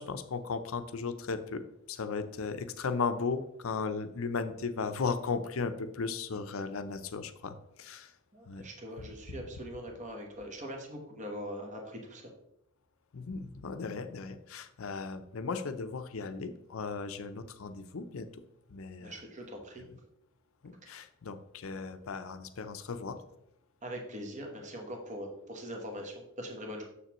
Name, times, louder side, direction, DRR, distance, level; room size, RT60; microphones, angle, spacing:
voice 1, 0.0-1.6 1.9-8.1 8.5-8.6 9.0-9.1 13.1-18.3 18.7-19.2 20.6-23.2, left 4 dB, 75° left, 10 dB, 0.6 m, -36 dB
voice 2, 8.3-12.3 19.0-19.8 20.8-20.9 23.8-26.8, equal, 35° right, 2 dB, 1.1 m, -42 dB
6.9 x 6.7 x 3.0 m, 0.82 s
head